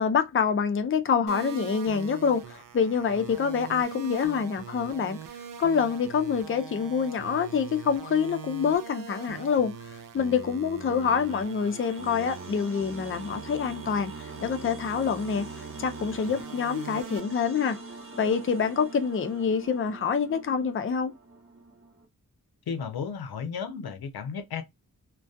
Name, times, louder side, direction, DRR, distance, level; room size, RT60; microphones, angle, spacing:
voice 1, 0.0-5.2 5.6-14.1 14.4-15.5 15.8-17.8 18.1-21.1, left 6 dB, 35° left, 0.4 m, -26 dB
sound 1, 1.3-17.2, right 7 dB, 60° right, 0.5 m, -42 dB
sound 2, 11.0-22.1, right 3 dB, 35° right, 0.9 m, -45 dB
voice 2, 22.7-24.6, left 6 dB, 90° left, 0.5 m, -34 dB
2.2 x 2.2 x 2.6 m
wide cardioid pair, 55°, 36 cm